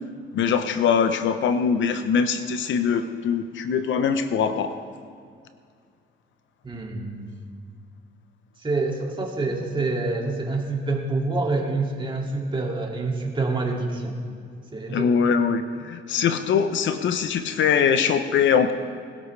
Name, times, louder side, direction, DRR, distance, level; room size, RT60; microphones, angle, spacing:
voice 1, 0.3-4.7 14.9-18.7, left 7 dB, 70° left, 9 dB, 0.8 m, -22 dB
voice 2, 6.6-7.3 8.6-14.1 14.7-15.1, right 3 dB, 25° right, -1 dB, 2.4 m, -27 dB
20.5 x 12.0 x 3.3 m, 2.2 s
cardioid pair, 90°, 20 cm